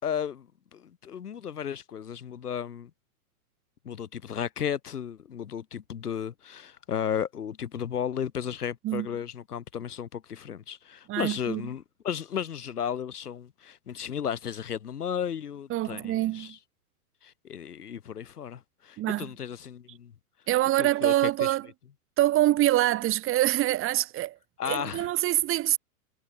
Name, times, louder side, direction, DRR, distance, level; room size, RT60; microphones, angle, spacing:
voice 1, 0.0-2.9 3.8-16.6 17.2-20.1 20.8-21.1 21.4-21.5 24.6-25.1, left 8 dB, 80° left, 7.7 m, -34 dB
voice 2, 11.1-11.6 15.7-16.6 19.0-19.3 20.5-21.7 22.2-24.4 24.6-25.8, right 15 dB, 30° right, 2.0 m, -25 dB
hypercardioid pair, 120°, 45 cm